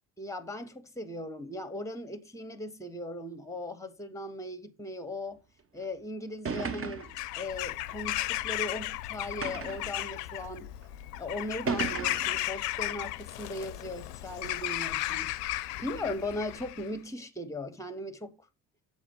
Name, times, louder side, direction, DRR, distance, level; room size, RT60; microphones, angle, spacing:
voice 1, 0.2-5.4 5.7-7.1 7.4-10.7 11.2-15.3 15.8-18.4, left 1 dB, 5° left, 1.2 m, -38 dB
sound 1, 5.8-5.9 6.5-7.2 8.1-8.2 9.4-9.9 10.8-10.9 11.7-12.4, right 5 dB, 25° right, 1.0 m, -34 dB
Bird vocalization bird call bird song / Crow, 7.0-16.9, left 16 dB, 70° left, 0.6 m, -35 dB
7.0 x 4.1 x 5.5 m
figure-of-eight pair, 50°, 49 cm